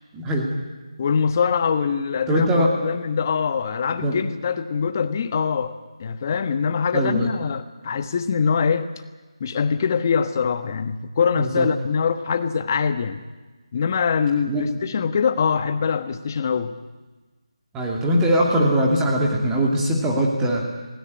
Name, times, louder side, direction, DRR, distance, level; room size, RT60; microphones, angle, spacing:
voice 1, 0.1-0.5 2.3-2.7 4.0-4.2 6.9-7.3 11.3-11.7 14.5-14.6 17.7-20.6, equal, 10° right, -1 dB, 2.7 m, -21 dB
voice 2, 1.0-8.9 9.4-13.2 13.7-16.7, left 6 dB, 30° left, 11 dB, 1.3 m, -23 dB
20.5 x 17.5 x 9.8 m, 1.3 s
figure-of-eight pair, 165°, 3 cm